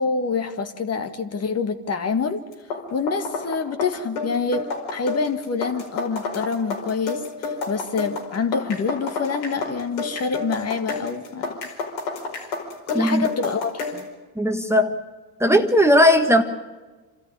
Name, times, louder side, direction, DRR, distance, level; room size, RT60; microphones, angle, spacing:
voice 1, 0.0-2.4 2.9-11.6 12.9-14.0, left 5 dB, 40° left, 8 dB, 2.0 m, -26 dB
sound 1, 2.5-14.1, left 4 dB, 85° left, 5.1 m, -30 dB
voice 2, 12.9-13.3 14.4-14.9 15.4-16.4, equal, 5° right, 5 dB, 1.5 m, -17 dB
27.5 x 13.5 x 9.8 m, 1.3 s
supercardioid pair, 80°, 40 cm